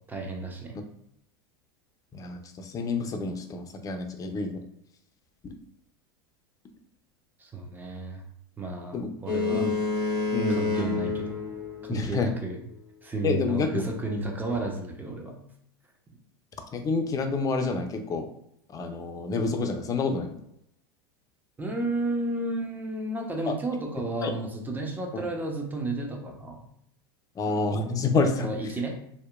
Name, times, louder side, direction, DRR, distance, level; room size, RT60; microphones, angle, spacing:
voice 1, 0.1-0.8 7.4-8.2 8.6-9.7 10.5-11.4 11.8-12.6 13.0-15.3 21.6-26.6 28.4-29.0, right 2 dB, 15° right, 1 dB, 0.6 m, -32 dB
voice 2, 2.1-4.6 8.9-9.1 9.5-9.7 10.3-10.6 11.9-12.3 13.2-13.8 16.7-18.3 18.7-20.4 23.5-23.6 24.2-24.3 25.1-25.3 27.4-28.5, left 4 dB, 25° left, 6 dB, 0.4 m, -28 dB
Boat Water vehicle, 9.3-12.4, left 3 dB, 60° right, 1.5 m, -29 dB
2.7 x 2.1 x 2.3 m, 0.73 s
hypercardioid pair, 90°, 13 cm